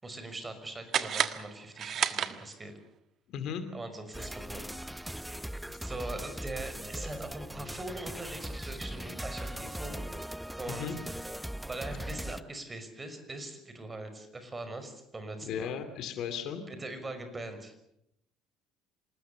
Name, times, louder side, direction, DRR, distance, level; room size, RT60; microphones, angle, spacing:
voice 1, 0.0-2.7 3.7-4.7 5.0-5.4 5.8-10.1 10.6-11.3 11.7-15.7 16.7-17.7, right 2 dB, 20° right, 9 dB, 5.8 m, -42 dB
sound 1, 0.9-2.8, right 9 dB, 45° right, 1.5 m, -32 dB
voice 2, 3.3-3.6 10.7-10.9 15.4-16.6, left 8 dB, 55° left, 10 dB, 2.6 m, -36 dB
sound 2, 4.1-12.4, right 1 dB, 5° right, 0.9 m, -39 dB
27.0 x 20.0 x 7.0 m, 0.77 s
figure-of-eight pair, 60°, 0 cm